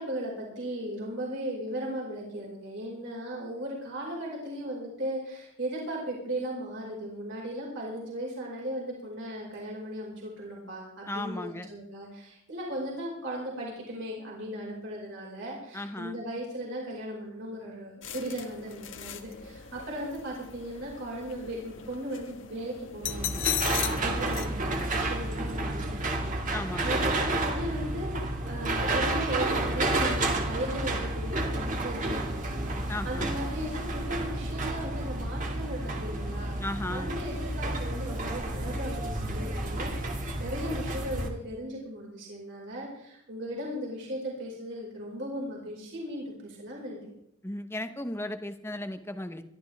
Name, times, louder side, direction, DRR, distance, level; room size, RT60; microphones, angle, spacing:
voice 1, 0.0-47.1, right 1 dB, 55° right, -3 dB, 5.1 m, -37 dB
voice 2, 11.1-11.7 15.7-16.2 26.5-27.0 32.9-33.3 36.6-37.1 47.4-49.4, left 1 dB, 10° left, 8 dB, 1.0 m, -35 dB
sound 1, 18.0-24.4, left 10 dB, 60° left, 1.3 m, -37 dB
sound 2, 23.0-41.3, right 2 dB, 35° right, 2.0 m, -31 dB
22.5 x 13.0 x 3.5 m, 0.77 s
head